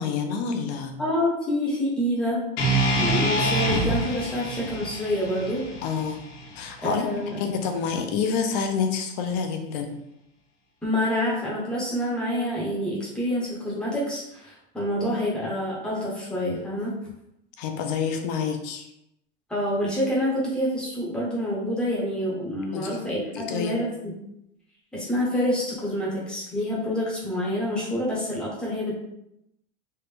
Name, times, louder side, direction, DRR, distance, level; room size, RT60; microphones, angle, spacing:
voice 1, 0.0-1.0 5.8-6.2 6.6-7.1 7.4-10.0 15.0-15.2 17.6-18.9 22.7-23.7, left 6 dB, 45° left, 5 dB, 0.5 m, -28 dB
voice 2, 1.0-2.5 3.0-5.7 6.8-7.4 10.8-17.0 19.5-24.1 24.9-29.0, equal, 5° left, -6 dB, 0.7 m, -27 dB
sound 1, 2.6-6.7, right 1 dB, 75° left, 1.1 m, -26 dB
3.3 x 2.4 x 3.3 m, 0.82 s
supercardioid pair, 175°, 30 cm